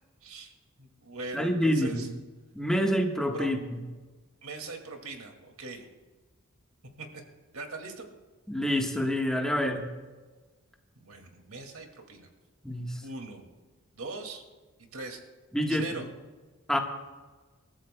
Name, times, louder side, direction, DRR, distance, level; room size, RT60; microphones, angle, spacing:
voice 1, 0.2-0.5 0.8-2.1 3.3-3.5 4.4-5.9 7.0-7.1 7.5-8.1 11.0-12.3 13.0-13.5 13.9-14.4 14.9-15.2 15.7-16.1, right 3 dB, 90° right, 3 dB, 2.3 m, -40 dB
voice 2, 1.3-2.1 2.5-3.6 8.5-9.9 12.6-13.0 15.5-15.9 16.7-16.8, equal, 5° left, 2 dB, 1.3 m, -27 dB
28.0 x 13.5 x 2.2 m, 1.3 s
head